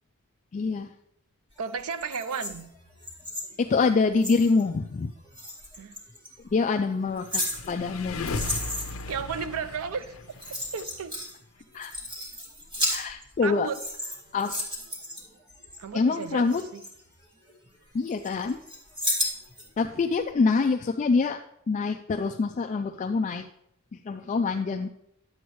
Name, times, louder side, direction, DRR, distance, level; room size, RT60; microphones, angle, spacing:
voice 1, 0.5-0.9 3.6-5.1 6.5-8.5 11.7-11.9 12.9-13.7 14.3-14.5 15.9-16.6 17.9-18.6 19.8-21.4 21.7-23.4 24.1-24.9, left 4 dB, 35° left, 6 dB, 0.3 m, -25 dB
voice 2, 1.6-2.7 5.7-5.9 9.1-10.2 10.7-11.2 13.4-13.8 15.8-16.8, right 6 dB, 80° right, 12 dB, 0.5 m, -33 dB
sound 1, 1.8-4.6 5.3-6.3 6.9-9.1 10.0-10.1 10.3-11.4 11.7-13.4 13.7-15.8 16.2-17.7 18.0-19.7 20.1-20.2, left 1 dB, 25° right, 2.1 m, -33 dB
sound 2, 7.2-10.8, left 3 dB, 75° left, 0.7 m, -36 dB
11.0 x 7.9 x 3.1 m, 0.77 s
head